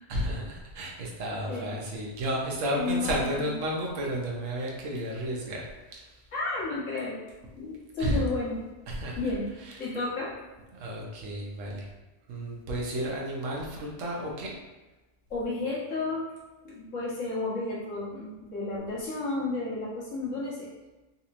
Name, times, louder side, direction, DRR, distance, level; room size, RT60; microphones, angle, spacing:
voice 1, 0.1-6.1 8.0-8.2 8.9-9.2 9.6-9.7 10.7-11.9 12.3-14.5, right 1 dB, 70° right, -2 dB, 1.1 m, -32 dB
voice 2, 2.7-3.5 6.3-7.2 7.6-8.6 9.2-9.5 9.8-10.3 15.3-16.3 16.6-20.7, left 3 dB, 65° left, -7 dB, 1.5 m, -32 dB
4.1 x 2.8 x 2.5 m, 1.1 s
omnidirectional pair, 1.4 m